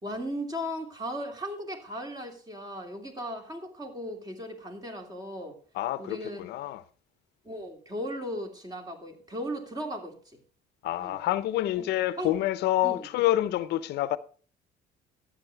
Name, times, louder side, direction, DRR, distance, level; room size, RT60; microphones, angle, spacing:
voice 1, 0.0-5.6 6.0-6.5 7.4-10.4 11.0-11.2 11.8-11.9 12.2-12.3 12.8-13.1, equal, 25° right, 2.8 m, -37 dB
voice 2, 5.7-6.8 10.8-14.2, left 14 dB, 80° left, 0.7 m, -27 dB
12.5 x 8.5 x 4.6 m
cardioid pair, 110°, 17 cm